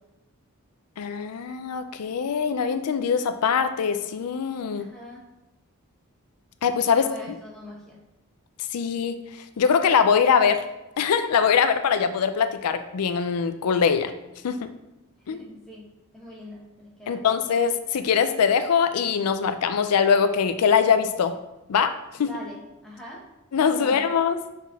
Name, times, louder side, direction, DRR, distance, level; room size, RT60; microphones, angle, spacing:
voice 1, 1.0-4.9 6.6-7.4 8.7-9.2 9.6-10.6 11.0-14.1 14.4-14.7 15.3-15.4 17.1-21.3 21.7-21.9 22.2-22.3 23.5-24.4, left 6 dB, 90° left, 9 dB, 0.4 m, -22 dB
voice 2, 4.7-5.2 6.9-8.0 15.3-15.8 16.1-17.3 22.2-23.2 23.7-24.0, left 1 dB, 5° left, -4 dB, 1.3 m, -42 dB
6.1 x 4.2 x 4.0 m, 0.97 s
head